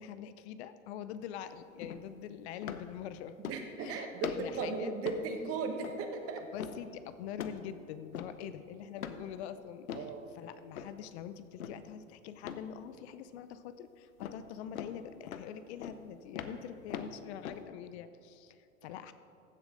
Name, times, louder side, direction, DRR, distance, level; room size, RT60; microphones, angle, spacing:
voice 1, 0.0-3.3 3.8-4.1 4.4-4.9 6.5-19.1, left 9 dB, 55° left, 12 dB, 0.6 m, -44 dB
sound 1, 1.8-2.0 2.6-2.9 3.4-3.8 4.2-4.6 5.1-5.3 5.8-6.0 6.6-6.8 7.4-7.7 8.1-8.4 9.0-9.2 9.9-10.1 10.7-11.0 11.6-11.9 12.4-12.7 14.2-14.4 14.8-14.9 15.3-15.5 15.8-16.0 16.4-17.6, left 8 dB, 85° left, 0.8 m, -41 dB
voice 2, 3.4-6.4 8.4-8.5 9.9-10.3, right 4 dB, 35° right, 5 dB, 1.3 m, -37 dB
15.0 x 7.1 x 3.8 m, 2.6 s
hypercardioid pair, 110°, 41 cm